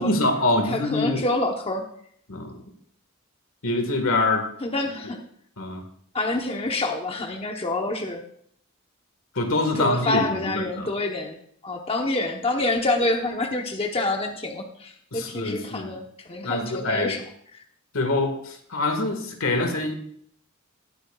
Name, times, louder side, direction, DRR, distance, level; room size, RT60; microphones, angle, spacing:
voice 1, 0.0-1.3 2.3-2.6 3.6-4.5 5.6-5.8 9.4-10.9 15.1-15.9 16.4-17.2 17.9-19.9, left 2 dB, 75° left, 6 dB, 1.8 m, -25 dB
voice 2, 0.7-1.8 4.6-5.2 6.1-8.2 9.8-11.4 11.6-17.2, left 2 dB, 25° left, 2 dB, 1.0 m, -27 dB
19.0 x 8.7 x 2.4 m, 0.65 s
head